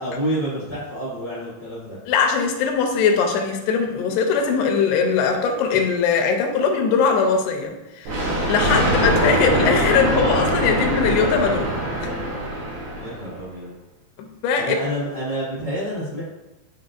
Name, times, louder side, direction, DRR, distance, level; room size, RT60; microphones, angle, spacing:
voice 1, 0.0-2.0 13.0-13.7 14.6-16.3, equal, 40° right, -9 dB, 1.4 m, -28 dB
voice 2, 2.1-11.7 12.0-12.1 14.4-14.8, left 5 dB, 85° left, 4 dB, 2.6 m, -20 dB
Thunder, 8.1-13.4, right 1 dB, 75° right, 2.9 m, -23 dB
9.6 x 3.8 x 2.6 m, 1.0 s
omnidirectional pair, 4.7 m